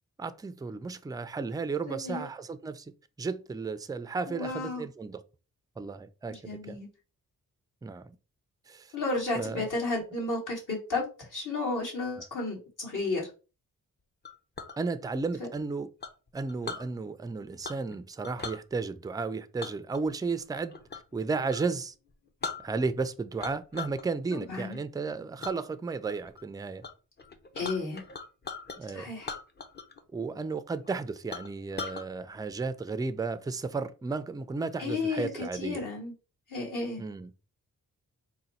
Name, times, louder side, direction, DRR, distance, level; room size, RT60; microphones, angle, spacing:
voice 1, 0.2-2.9 3.2-5.2 5.8-6.8 7.8-8.2 8.7-8.9 9.4-9.7 14.8-15.9 16.3-20.7 21.1-21.9 22.6-26.8 28.8-29.1 30.1-35.8 37.0-37.3, right 4 dB, 10° right, 0.3 m, -34 dB
voice 2, 1.9-2.2 4.3-4.9 6.3-6.9 8.9-13.3 15.4-15.5 24.3-24.8 27.6-28.0 28.9-29.3 34.8-36.1 36.5-37.0, left 3 dB, 60° left, 2.2 m, -33 dB
Chink clink, 14.2-14.8 16.0-16.9 17.6-17.9 18.2-18.6 19.6-21.1 21.5-21.7 22.1-22.2 22.4-23.0 23.4-24.0 24.4-24.8 25.4-25.6 26.1-26.4 26.8-26.9 27.2-28.8 29.2-30.0 30.3-30.4 30.8-30.9 31.3-32.0, left 4 dB, 30° left, 0.6 m, -39 dB
3.9 x 2.2 x 4.2 m
cardioid pair, 85°, 34 cm